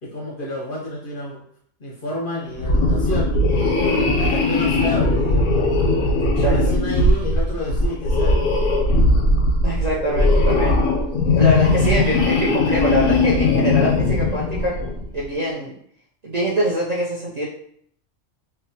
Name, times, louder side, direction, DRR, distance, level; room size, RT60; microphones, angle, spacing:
voice 1, 0.0-1.4 1.8-3.3 4.2-5.5 6.3-8.4 11.7-12.0, equal, 55° left, -3 dB, 0.7 m, -30 dB
sound 1, 2.6-15.1, left 2 dB, 90° left, 1.0 m, -19 dB
voice 2, 3.8-4.3 6.2-6.6 9.6-10.8 11.4-14.7 15.1-15.7 16.2-17.4, right 1 dB, 50° right, -8 dB, 0.5 m, -24 dB
2.9 x 2.2 x 2.8 m, 0.65 s
omnidirectional pair, 1.3 m